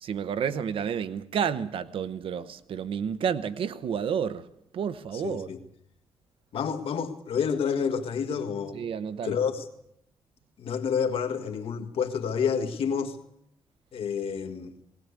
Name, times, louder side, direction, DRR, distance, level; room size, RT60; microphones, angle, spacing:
voice 1, 0.0-4.5 4.7-5.5 8.7-9.4, right 7 dB, 65° right, 0.9 m, -30 dB
voice 2, 5.1-5.6 6.5-8.8 9.2-9.7 10.6-13.2 13.9-14.7, left 6 dB, 75° left, 1.9 m, -29 dB
19.5 x 19.0 x 8.3 m
wide cardioid pair, 170°, 10 cm